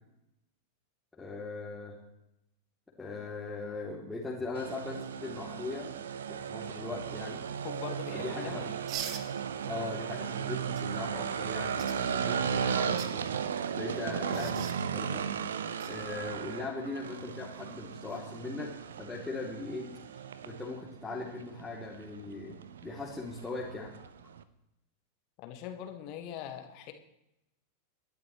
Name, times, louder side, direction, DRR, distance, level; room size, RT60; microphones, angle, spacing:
voice 1, 1.1-1.9 3.0-5.9 6.3-7.4 8.1-8.7 9.7-13.2 13.7-15.3 15.9-19.9 20.4-24.0, left 3 dB, 10° left, -5 dB, 2.9 m, -40 dB
sound 1, 4.6-24.4, right 7 dB, 65° right, 0.9 m, -36 dB
voice 2, 7.6-8.7 25.4-26.9, left 9 dB, 40° left, 6 dB, 1.7 m, -42 dB
sound 2, 8.9-9.3 10.8-10.9 11.8-12.0 12.8-13.1 14.3-14.8 15.8-15.9 18.0-18.2, right 9 dB, 40° right, 1.5 m, -40 dB
26.5 x 12.0 x 3.2 m, 0.86 s
figure-of-eight pair, 90°, 0 cm